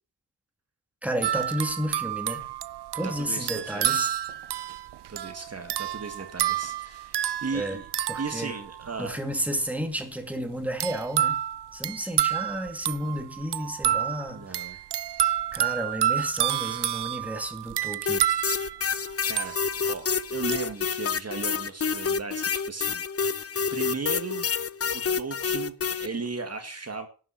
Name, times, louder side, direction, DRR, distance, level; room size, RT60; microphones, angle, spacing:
voice 1, 1.0-2.4 2.9-4.1 7.5-7.8 8.1-8.5 9.0-11.4 11.7-14.7 15.5-18.2, equal, 5° right, 5 dB, 2.4 m, -32 dB
sound 1, 1.2-9.1 10.8-20.0 20.5-20.7, right 11 dB, 80° right, 0.7 m, -29 dB
voice 2, 3.0-4.0 5.1-7.9 8.2-9.2 14.3-14.8 19.3-19.5 19.9-24.5 24.9-27.1, right 4 dB, 40° right, 6 dB, 1.9 m, -36 dB
sound 2, 18.1-26.1, left 6 dB, 35° left, 0.7 m, -28 dB
11.5 x 7.4 x 7.8 m, 0.38 s
wide cardioid pair, 145°, 40 cm